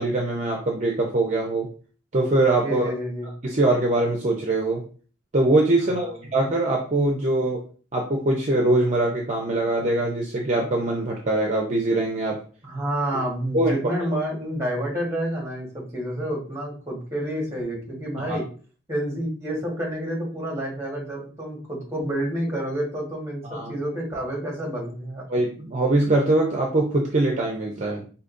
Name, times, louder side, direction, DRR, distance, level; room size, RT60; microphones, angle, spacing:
voice 1, 0.0-1.7 2.1-2.9 3.4-4.8 5.3-7.6 7.9-12.4 13.5-13.8 18.2-18.4 23.4-23.7 25.3-28.0, right 2 dB, 40° right, 0 dB, 0.6 m, -22 dB
voice 2, 2.6-3.3 5.8-6.2 12.6-18.4 18.9-25.2, right 1 dB, 15° right, -2 dB, 1.4 m, -29 dB
5.0 x 2.8 x 2.5 m, 0.40 s
head